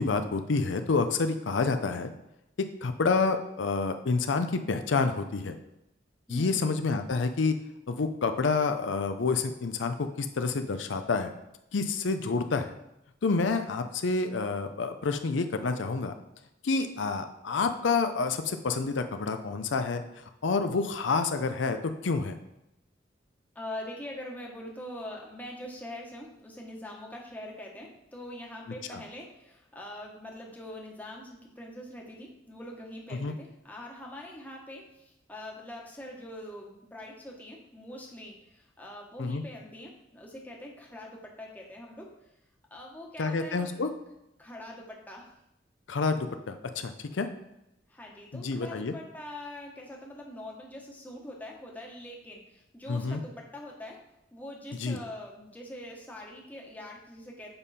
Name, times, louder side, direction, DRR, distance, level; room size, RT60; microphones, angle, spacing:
voice 1, 0.0-2.1 2.8-5.5 6.3-7.6 7.9-11.3 11.7-12.7 13.2-16.1 16.6-22.4 28.9-29.0 33.1-33.3 39.2-39.4 43.2-43.9 45.9-47.3 48.3-48.9 52.9-53.2 54.8-55.0, left 4 dB, 90° left, 8 dB, 0.5 m, -28 dB
voice 2, 6.3-6.6 23.5-42.1 42.7-43.8 44.4-45.3 47.9-54.0 54.3-57.5, left 1 dB, 10° left, -1 dB, 1.1 m, -43 dB
7.0 x 5.4 x 4.2 m, 0.87 s
head